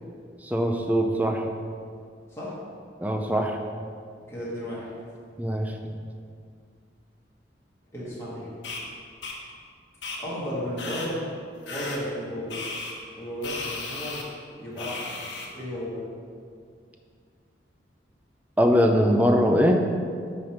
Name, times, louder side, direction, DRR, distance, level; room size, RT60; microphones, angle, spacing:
voice 1, 0.4-1.5 3.0-3.6 5.4-5.7 18.6-19.8, equal, 10° right, 3 dB, 0.5 m, -22 dB
voice 2, 4.3-4.9 7.9-8.5 10.2-11.3 11.7-12.6 13.1-14.2 14.6-15.2 15.5-16.1, equal, 15° left, -9 dB, 1.8 m, -33 dB
sound 1, 8.6-8.8 9.2-9.3 10.0-10.2 10.8-11.1 11.7-12.0 12.5-12.9 13.4-14.2 14.8-15.5, left 3 dB, 80° left, 1.1 m, -35 dB
9.3 x 3.4 x 5.8 m, 2.2 s
head